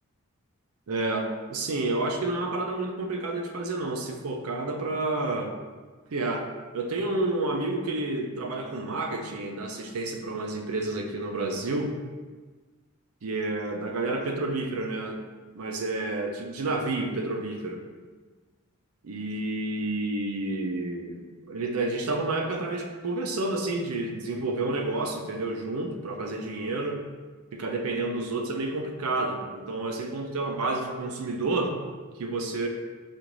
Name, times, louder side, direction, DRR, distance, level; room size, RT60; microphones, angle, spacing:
voice 1, 0.9-5.5 6.1-12.0 13.2-15.2 15.6-17.8 19.0-21.2 21.5-27.0 27.5-31.8 32.2-32.7, right 2 dB, 80° right, 3 dB, 0.5 m, -30 dB
4.9 x 2.4 x 3.0 m, 1.4 s
head